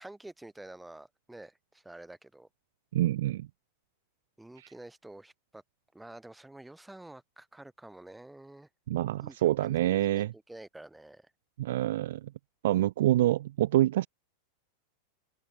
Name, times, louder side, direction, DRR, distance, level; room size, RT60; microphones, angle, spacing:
voice 1, 0.0-2.5 4.4-5.6 5.9-8.7 9.2-11.3, right 1 dB, 5° right, 4.9 m, -49 dB
voice 2, 2.9-3.5 8.9-10.3 11.6-12.2 12.6-14.1, right 14 dB, 55° right, 0.6 m, -26 dB
open air
figure-of-eight pair, 90°, 0 cm